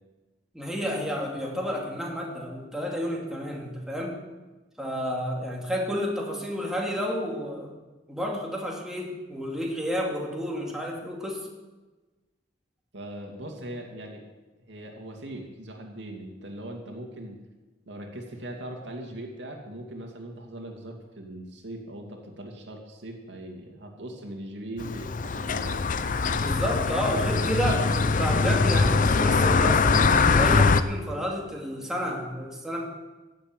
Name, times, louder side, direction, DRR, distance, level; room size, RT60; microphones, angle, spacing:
voice 1, 0.5-4.2 4.8-7.7 8.1-11.5 26.4-33.0, equal, 5° right, -2 dB, 2.3 m, -31 dB
voice 2, 12.9-14.2 14.7-17.4 17.9-25.9, right 1 dB, 70° right, 2 dB, 2.6 m, -40 dB
sound 1, 24.8-30.8, left 4 dB, 45° left, 0.7 m, -22 dB
15.5 x 7.6 x 9.1 m, 1.2 s
head